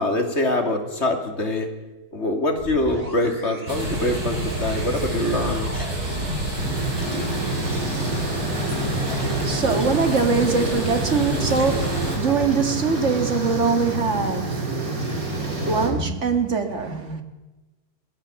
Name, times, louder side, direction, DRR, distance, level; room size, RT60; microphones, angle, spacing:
voice 1, 0.0-1.7 2.1-5.9, left 1 dB, 45° left, 4 dB, 3.0 m, -24 dB
sound 1, 2.6-6.8, right 1 dB, 25° right, 3.2 m, -37 dB
sound 2, 3.7-12.2, equal, 90° right, 6.8 m, -28 dB
sound 3, 6.5-15.9, right 2 dB, 65° right, 4.4 m, -27 dB
voice 2, 9.1-14.7 15.6-17.2, right 5 dB, 50° right, 7 dB, 2.3 m, -23 dB
22.5 x 16.5 x 7.1 m, 1.1 s
omnidirectional pair, 1.6 m